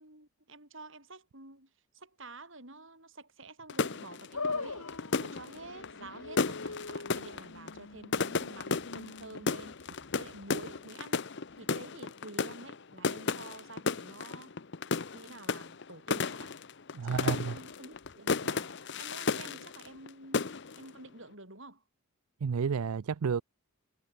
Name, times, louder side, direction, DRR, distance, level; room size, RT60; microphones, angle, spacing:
voice 1, 0.0-4.9 5.2-11.2 11.6-14.6 15.1-16.7 17.0-21.8, right 2 dB, 60° right, 7.6 m, -49 dB
sound 1, 3.7-20.1 20.3-20.9, left 4 dB, 55° left, 0.8 m, -34 dB
sound 2, 4.3-10.8, left 3 dB, 85° left, 2.4 m, -42 dB
voice 2, 16.9-17.6 22.4-23.4, right 6 dB, 90° right, 0.5 m, -31 dB
head